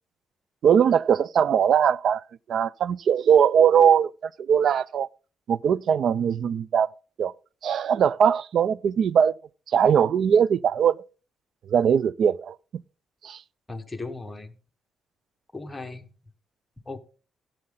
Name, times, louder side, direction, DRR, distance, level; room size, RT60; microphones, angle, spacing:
voice 1, 0.6-2.2 2.5-4.1 4.5-5.1 5.5-6.9 7.2-7.3 7.6-9.3 9.7-11.0 11.7-12.5 13.2-13.4, right 8 dB, 65° right, 0.4 m, -20 dB
voice 2, 13.7-14.5 15.5-16.1 16.9-17.0, left 3 dB, 10° left, 1.3 m, -36 dB
13.0 x 7.6 x 3.9 m
cardioid pair, 90°, 0 cm